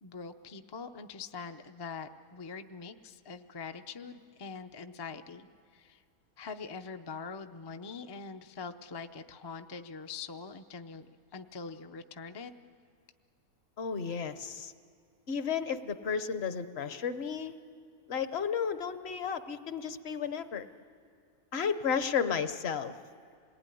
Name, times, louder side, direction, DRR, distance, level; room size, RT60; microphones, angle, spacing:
voice 1, 0.0-5.5 5.7-6.0 6.4-11.1 11.3-12.5, left 5 dB, 35° left, 6 dB, 0.4 m, -43 dB
voice 2, 13.8-14.7 15.3-17.5 18.1-20.7 21.5-22.9, left 6 dB, 50° left, 11 dB, 1.0 m, -33 dB
26.5 x 19.5 x 9.9 m, 2.2 s
omnidirectional pair, 1.6 m